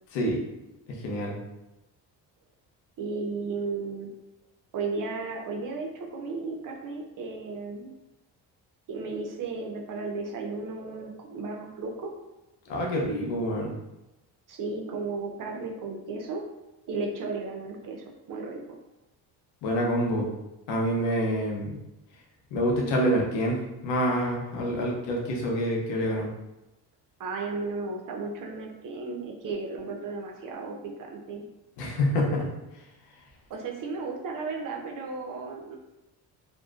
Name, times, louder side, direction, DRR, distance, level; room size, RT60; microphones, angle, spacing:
voice 1, 0.1-0.4 1.0-1.4 12.7-13.7 19.6-20.3 20.7-21.8 22.5-26.3 31.8-32.5, equal, 85° left, -1 dB, 0.7 m, -27 dB
voice 2, 3.0-4.1 4.7-7.9 8.9-12.1 14.5-16.4 16.9-18.8 27.2-31.5 33.5-35.8, right 3 dB, 50° right, 1 dB, 0.6 m, -34 dB
2.5 x 2.1 x 2.4 m, 0.96 s
supercardioid pair, 70°, 42 cm